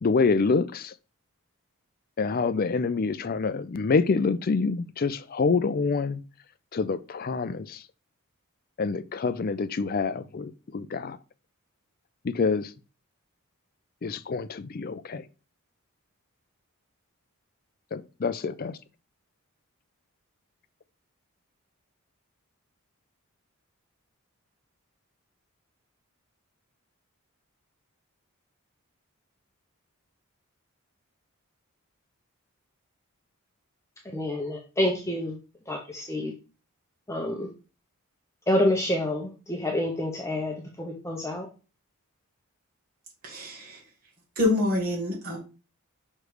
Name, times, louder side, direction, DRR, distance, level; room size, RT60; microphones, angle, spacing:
voice 1, 0.0-0.9 2.2-6.2 6.7-7.8 8.8-11.2 12.2-12.7 14.0-15.3 17.9-18.8, left 4 dB, 40° left, 0.4 m, -26 dB
voice 2, 34.1-35.4 35.7-36.3 37.1-37.5 38.5-41.5, left 1 dB, 15° left, 0.7 m, -28 dB
voice 3, 43.2-43.8 44.3-45.4, left 2 dB, 40° right, 1.7 m, -26 dB
6.3 x 3.2 x 4.9 m
head